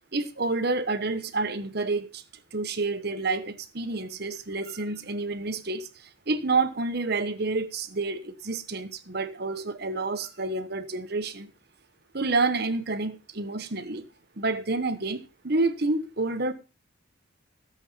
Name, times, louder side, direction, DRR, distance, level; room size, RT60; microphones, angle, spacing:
voice 1, 0.1-2.2 2.5-11.5 12.1-14.0 14.4-16.5, right 3 dB, 50° right, 1.2 m, -29 dB
14.0 x 8.0 x 5.5 m
head